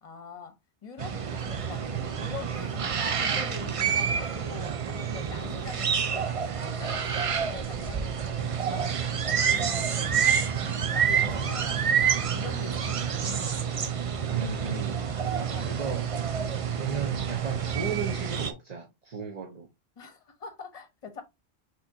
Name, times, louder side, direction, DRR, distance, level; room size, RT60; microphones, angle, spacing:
voice 1, 0.0-2.9 3.1-8.9 9.4-11.9 12.3-13.9 15.0-16.1 16.5-16.7 20.0-21.2, left 5 dB, 35° left, 0.9 m, -44 dB
sound 1, 1.0-18.5, right 7 dB, 65° right, 0.3 m, -28 dB
voice 2, 14.3-15.1 15.6-16.1 16.8-19.7, right 6 dB, 40° right, 0.9 m, -35 dB
6.0 x 3.0 x 2.7 m
omnidirectional pair, 1.2 m